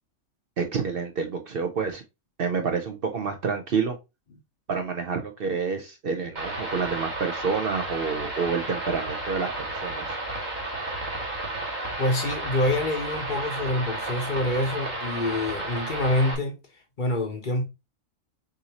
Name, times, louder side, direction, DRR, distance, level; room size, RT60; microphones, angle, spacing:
voice 1, 0.6-2.0 2.4-4.0 4.7-10.2, right 5 dB, 55° right, 0.8 m, -28 dB
sound 1, 6.4-16.4, right 2 dB, 35° right, 1.5 m, -32 dB
voice 2, 12.0-16.6 17.0-17.6, left 1 dB, 45° left, 0.9 m, -26 dB
6.3 x 2.7 x 2.9 m
omnidirectional pair, 1.4 m